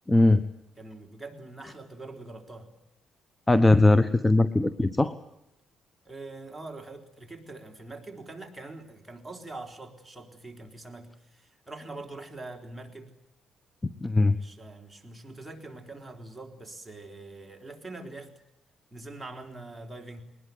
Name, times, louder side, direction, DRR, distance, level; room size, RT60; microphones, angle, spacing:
voice 1, 0.1-0.4 3.5-5.1 14.0-14.4, left 2 dB, 15° left, 12 dB, 1.1 m, -20 dB
voice 2, 0.8-2.7 6.0-13.1 14.3-18.3 18.9-20.2, right 2 dB, 10° right, 3 dB, 3.9 m, -43 dB
22.0 x 20.0 x 7.9 m, 0.86 s
cardioid pair, 90°, 0 cm